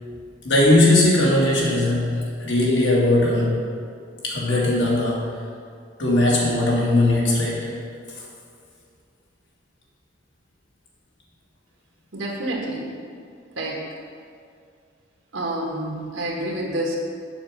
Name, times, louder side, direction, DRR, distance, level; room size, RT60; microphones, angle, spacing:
voice 1, 0.4-3.6 4.2-5.4 6.0-7.7, left 1 dB, 70° left, -5 dB, 2.0 m, -19 dB
voice 2, 12.1-12.9 13.6-13.9 15.3-17.0, right 1 dB, 85° right, -1 dB, 1.5 m, -28 dB
7.0 x 4.9 x 6.7 m, 2.3 s
head